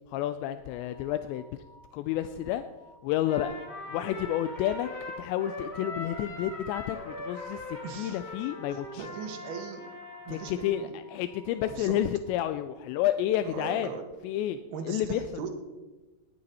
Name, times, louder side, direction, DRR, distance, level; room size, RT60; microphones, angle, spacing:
voice 1, 0.1-1.6 1.9-2.6 3.0-3.6 3.9-4.9 5.2-9.1 10.3-13.9 14.2-15.4, left 12 dB, 85° left, 10 dB, 2.8 m, -30 dB
sound 1, 0.6-12.9, equal, 60° left, 3.7 m, -58 dB
Trumpet, 3.2-10.8, left 2 dB, 25° left, 1.5 m, -41 dB
voice 2, 7.8-8.2 8.7-9.9 10.2-11.0 11.7-12.0 13.4-14.1 14.7-15.5, right 6 dB, 70° right, 6 dB, 3.1 m, -39 dB
18.5 x 9.4 x 4.2 m, 1.2 s
omnidirectional pair, 5.0 m